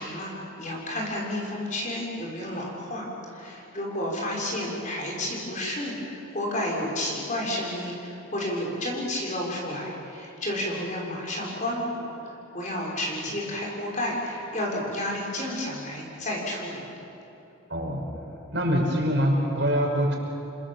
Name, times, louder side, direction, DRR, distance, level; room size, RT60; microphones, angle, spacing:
voice 1, 0.0-11.9 12.2-16.9, left 1 dB, 35° left, -2 dB, 6.3 m, -31 dB
voice 2, 17.7-18.0 18.5-20.2, equal, 55° right, 0 dB, 5.4 m, -24 dB
29.0 x 25.5 x 7.5 m, 2.8 s
head